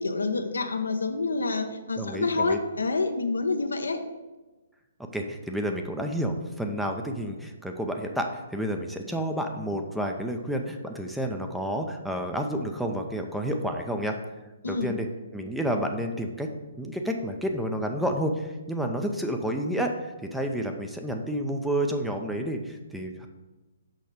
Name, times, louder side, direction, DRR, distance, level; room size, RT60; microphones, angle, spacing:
voice 1, 0.0-4.0 14.6-14.9, left 3 dB, 75° left, 7 dB, 0.8 m, -27 dB
voice 2, 2.0-2.6 5.1-14.1 14.6-15.1 15.3-16.5 16.8-23.3, equal, ahead, 3 dB, 0.6 m, -30 dB
6.5 x 5.5 x 5.0 m, 1.2 s
figure-of-eight pair, 130°, 0 cm